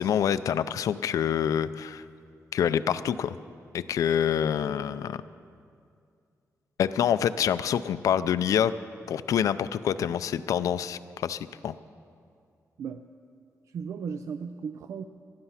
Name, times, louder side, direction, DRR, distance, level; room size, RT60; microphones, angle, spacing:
voice 1, 0.0-2.0 2.5-3.3 3.7-5.2 6.8-8.7 9.1-11.7, left 9 dB, 75° left, 14 dB, 0.5 m, -26 dB
voice 2, 13.7-15.0, right 6 dB, 65° right, 9 dB, 0.5 m, -35 dB
19.0 x 12.5 x 5.7 m, 2.3 s
wide cardioid pair, 175°, 6 cm